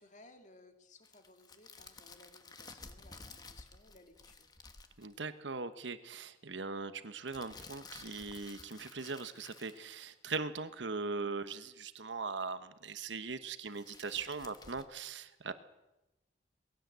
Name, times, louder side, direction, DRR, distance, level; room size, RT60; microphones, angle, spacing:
voice 1, 0.0-4.5, left 2 dB, 40° left, 5 dB, 2.5 m, -60 dB
sound 1, 1.0-5.1 7.3-10.4 13.5-14.8, left 4 dB, 20° left, 1.2 m, -53 dB
voice 2, 5.0-15.5, right 4 dB, 80° right, 11 dB, 1.1 m, -40 dB
20.0 x 17.0 x 8.1 m, 0.97 s
head